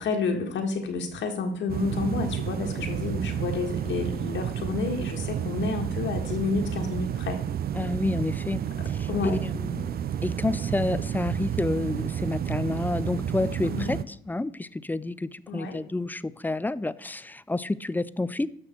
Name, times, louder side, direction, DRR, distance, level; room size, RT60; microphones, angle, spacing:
voice 1, 0.0-7.4 9.1-9.4 13.6-14.0 15.5-15.8, left 4 dB, 70° left, 1.7 m, -30 dB
sound 1, 1.7-14.0, right 9 dB, 50° right, 0.5 m, -31 dB
voice 2, 7.7-18.5, left 2 dB, 10° left, 0.3 m, -30 dB
12.5 x 6.2 x 4.5 m
cardioid pair, 90°, 20 cm